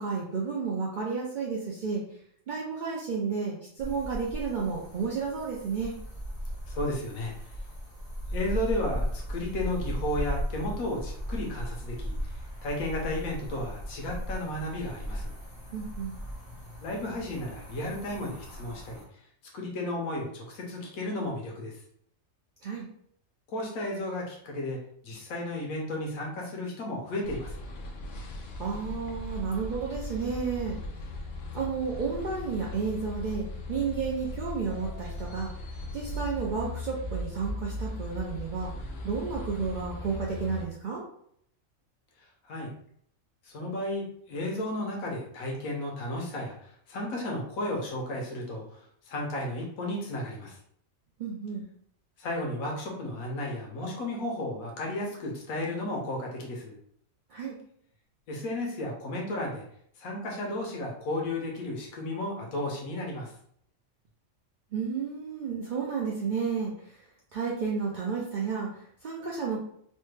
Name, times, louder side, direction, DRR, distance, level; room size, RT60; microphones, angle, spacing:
voice 1, 0.0-2.0 2.5-6.0 15.7-16.1 22.6-22.9 28.6-30.8 31.5-35.5 35.9-41.0 51.2-51.6 57.3-57.6 64.7-67.0 67.3-69.6, right 5 dB, 70° right, -3 dB, 0.4 m, -32 dB
sound 1, 3.8-19.1, equal, 30° left, 1.2 m, -37 dB
voice 2, 6.7-7.3 8.3-15.3 16.8-19.0 19.5-21.8 23.5-24.8 25.0-27.6 42.4-42.7 43.4-50.6 52.2-56.7 58.3-59.6 60.0-63.3, left 1 dB, 85° left, -1 dB, 1.2 m, -33 dB
sound 2, 27.2-40.6, left 1 dB, 65° left, 0.6 m, -38 dB
3.2 x 2.2 x 3.1 m, 0.67 s
omnidirectional pair, 1.4 m